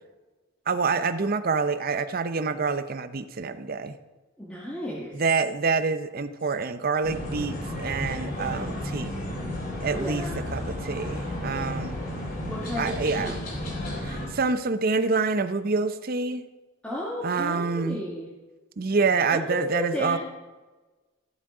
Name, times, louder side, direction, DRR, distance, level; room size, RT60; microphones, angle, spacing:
voice 1, 0.7-4.0 5.1-9.1 9.8-12.0 12.8-13.4 14.0-16.5 17.2-18.0 18.8-20.2, right 4 dB, 50° right, 11 dB, 0.6 m, -27 dB
voice 2, 4.4-5.1 9.9-10.5 12.5-13.4 16.8-18.3 19.3-20.2, equal, 5° left, -5 dB, 1.4 m, -33 dB
sound 1, 7.0-14.3, left 1 dB, 50° left, 3.7 m, -33 dB
13.5 x 7.4 x 4.9 m, 1.2 s
head